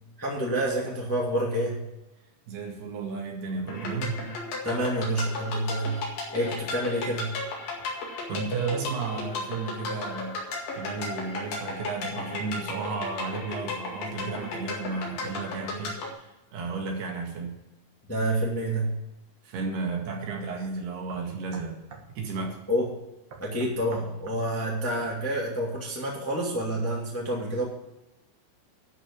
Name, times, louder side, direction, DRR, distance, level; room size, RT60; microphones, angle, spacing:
voice 1, 0.2-1.8 4.6-6.0 6.3-7.3 18.1-18.9 22.7-22.9 23.4-27.6, right 1 dB, 5° left, -3 dB, 1.4 m, -28 dB
voice 2, 2.5-4.3 8.3-10.5 10.8-17.6 19.4-21.8 22.2-22.6, right 4 dB, 80° right, 1 dB, 3.9 m, -33 dB
sound 1, 3.7-16.1, left 3 dB, 65° left, 3.7 m, -35 dB
sound 2, 19.9-20.1 20.6-20.7 21.1-22.1 22.4-22.5 23.3-24.4 25.0-25.2, right 4 dB, 60° right, 1.3 m, -46 dB
12.0 x 5.6 x 8.6 m, 0.93 s
omnidirectional pair, 4.6 m